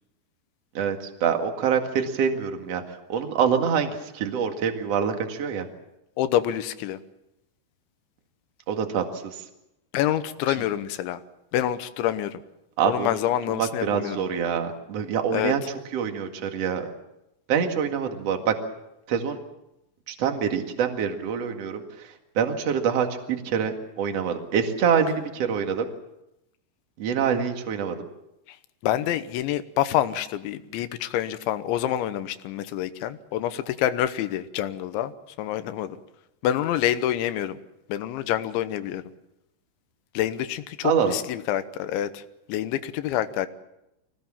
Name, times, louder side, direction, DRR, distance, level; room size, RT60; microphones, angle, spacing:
voice 1, 0.7-5.7 8.7-9.4 10.6-10.7 12.8-13.2 13.5-15.6 15.9-16.9 17.5-18.5 19.1-19.4 20.1-25.9 27.0-28.0 40.8-41.1, right 7 dB, 45° right, 4 dB, 2.3 m, -25 dB
voice 2, 6.2-7.0 9.9-11.2 11.5-12.4 12.8-14.2 15.3-15.5 28.8-35.1 35.4-36.0 36.4-37.6 37.9-39.0 40.2-42.2 42.5-43.5, left 12 dB, 85° left, 12 dB, 3.4 m, -27 dB
25.0 x 18.5 x 7.4 m, 0.88 s
omnidirectional pair, 5.2 m